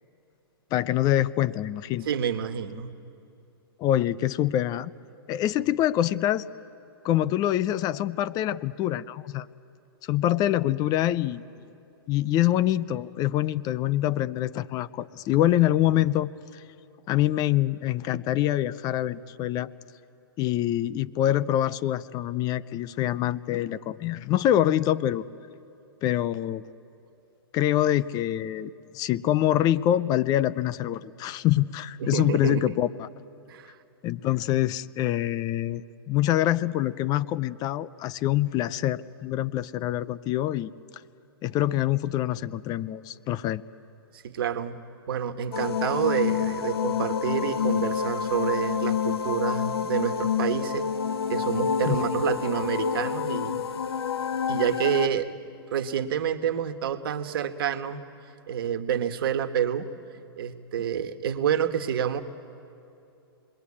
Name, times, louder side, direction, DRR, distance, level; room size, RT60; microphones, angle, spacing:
voice 1, 0.7-2.1 3.8-4.9 5.3-6.5 7.0-9.5 10.1-11.4 12.1-16.6 17.1-19.7 20.4-25.2 26.0-26.6 27.5-33.1 34.0-40.7 41.4-43.6 51.9-52.0, left 13 dB, 30° left, 16 dB, 0.6 m, -25 dB
voice 2, 2.0-2.9 32.0-32.6 33.5-33.7 44.2-50.9 51.3-53.6 54.5-55.3 55.7-58.1 58.5-59.9 60.4-62.2, right 8 dB, 65° right, 9 dB, 1.5 m, -28 dB
sound 1, 45.5-55.1, left 7 dB, 80° left, 1.1 m, -28 dB
28.0 x 21.5 x 8.5 m, 2.7 s
hypercardioid pair, 125°, 13 cm